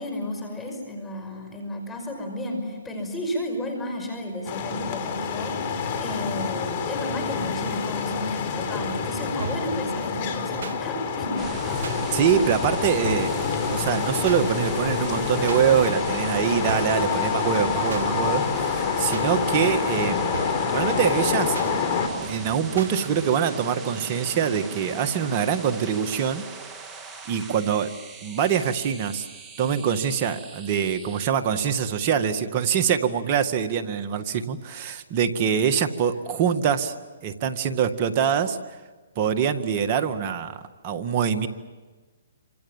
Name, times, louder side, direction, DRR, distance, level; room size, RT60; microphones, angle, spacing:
voice 1, 0.0-5.6 6.0-11.5, left 1 dB, 10° left, 3 dB, 5.6 m, -32 dB
sound 1, 4.5-22.1, left 6 dB, 40° left, 4.1 m, -27 dB
sound 2, 9.4-9.7 10.6-10.8 11.8-12.0 13.0-13.4 14.3-14.4 15.5-15.6 16.7-17.0 17.9-18.1 19.1-19.3 20.3-20.7 21.5-21.7 22.8-22.9, right 4 dB, 65° right, 2.1 m, -34 dB
sound 3, 11.4-31.3, right 3 dB, 15° right, 3.0 m, -39 dB
voice 2, 12.1-13.3 13.7-26.4 27.3-27.9 28.2-29.3 29.6-36.9 37.2-38.6 39.2-41.5, right 7 dB, 35° right, 7 dB, 1.9 m, -24 dB
27.5 x 26.0 x 7.4 m, 1.3 s
hypercardioid pair, 145°, 0 cm